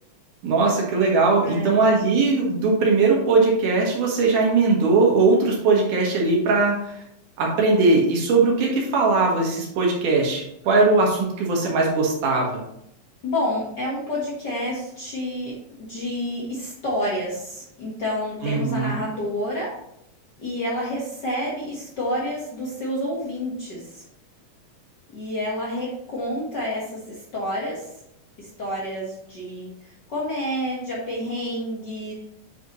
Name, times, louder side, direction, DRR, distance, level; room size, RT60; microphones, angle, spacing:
voice 1, 0.4-6.8 7.4-12.6 18.4-19.0, right 3 dB, 75° right, -2 dB, 3.1 m, -20 dB
voice 2, 1.4-1.8 13.2-15.5 15.9-19.7 20.4-24.0 25.1-27.9 28.4-32.1, left 1 dB, 45° left, -5 dB, 1.5 m, -29 dB
8.9 x 5.2 x 3.1 m, 0.76 s
omnidirectional pair, 3.6 m